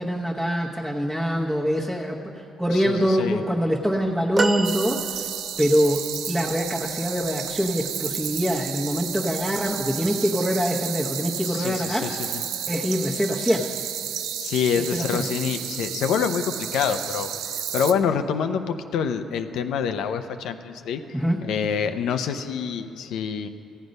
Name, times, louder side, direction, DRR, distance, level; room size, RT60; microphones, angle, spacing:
voice 1, 0.0-5.3 5.6-12.2 12.7-13.7 14.8-15.3 21.1-21.4, equal, 5° right, -3 dB, 1.0 m, -24 dB
voice 2, 2.7-3.4 11.4-12.4 14.4-17.3 17.7-21.0 21.4-23.5, left 7 dB, 85° left, 8 dB, 0.6 m, -26 dB
sound 1, 4.4-5.8 8.2-8.4 9.7-9.8, right 4 dB, 30° right, 0.4 m, -28 dB
sound 2, 4.6-17.9, right 9 dB, 85° right, 0.5 m, -32 dB
15.0 x 8.1 x 5.3 m, 2.8 s
cardioid pair, 90°, 0 cm